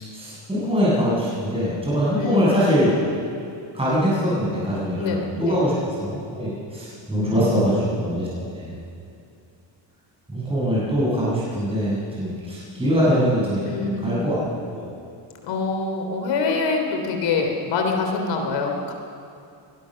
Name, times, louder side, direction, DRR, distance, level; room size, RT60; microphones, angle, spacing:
voice 1, 0.1-2.9 3.7-8.7 10.3-13.7 14.0-14.4 14.7-14.9, equal, 10° right, -8 dB, 7.8 m, -23 dB
voice 2, 2.2-2.8 5.0-5.7 7.2-7.8 13.6-14.2 15.4-18.9, left 4 dB, 65° left, 3 dB, 3.7 m, -25 dB
24.0 x 19.5 x 6.6 m, 2.5 s
cardioid pair, 165°, 47 cm